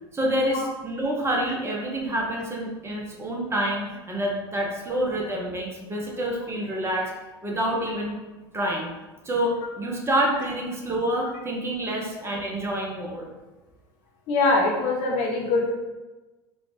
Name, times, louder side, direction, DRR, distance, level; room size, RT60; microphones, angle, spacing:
voice 1, 0.1-7.1 7.4-8.1 8.5-8.9 9.2-13.3, right 1 dB, 20° right, -1 dB, 0.9 m, -27 dB
voice 2, 14.3-15.7, left 3 dB, 55° left, -1 dB, 0.9 m, -23 dB
4.0 x 2.5 x 3.3 m, 1.2 s
hypercardioid pair, 80°, 14 cm